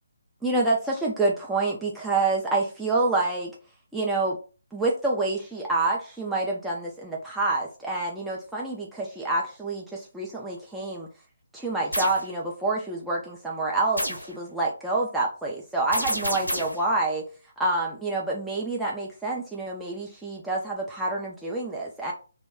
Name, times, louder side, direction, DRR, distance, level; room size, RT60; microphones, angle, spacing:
voice 1, 0.4-3.5 3.9-4.4 4.7-11.1 11.5-17.2 17.6-22.1, right 2 dB, 5° right, -4 dB, 0.3 m, -27 dB
sound 1, 11.9-12.2 14.0-14.3 15.9-16.8, equal, 85° left, 0.8 m, -29 dB
2.2 x 2.1 x 3.5 m, 0.35 s
figure-of-eight pair, 140°, 0 cm